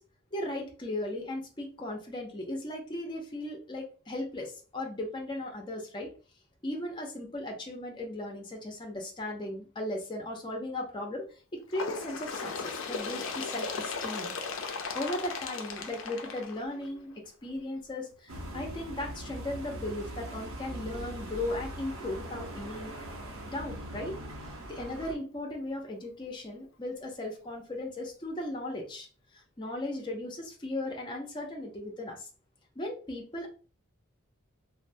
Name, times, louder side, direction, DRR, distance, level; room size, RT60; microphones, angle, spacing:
voice 1, 0.3-6.1 6.6-11.2 11.7-14.3 14.9-17.1 17.4-22.9 23.4-24.1 24.7-29.1 29.3-32.3 32.8-33.5, left 1 dB, 25° left, 1 dB, 0.6 m, -37 dB
Bird, 11.7-17.1 18.0-18.1 18.5-18.6 19.5-19.6 20.5-20.6 21.5-21.6, left 5 dB, 70° left, 0.5 m, -37 dB
sound 1, 18.3-25.1, right 1 dB, 75° right, 0.7 m, -41 dB
3.2 x 2.0 x 2.5 m, 0.37 s
head